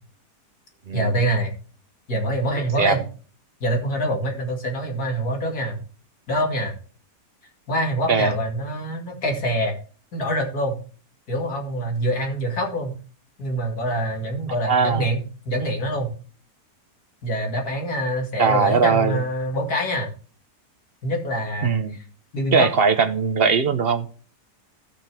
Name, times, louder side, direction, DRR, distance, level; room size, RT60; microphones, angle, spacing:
voice 1, 0.9-1.5 2.1-3.0 3.6-5.8 6.3-6.7 7.7-9.8 10.1-10.8 11.3-13.0 13.4-16.1 17.2-20.1 21.0-21.7 22.3-22.7, equal, 65° left, 2.8 m, -25 dB
voice 2, 14.6-15.1 18.4-19.2 21.6-22.0 22.5-24.1, right 5 dB, 50° right, 0.8 m, -20 dB
16.5 x 6.0 x 3.4 m
omnidirectional pair, 1.7 m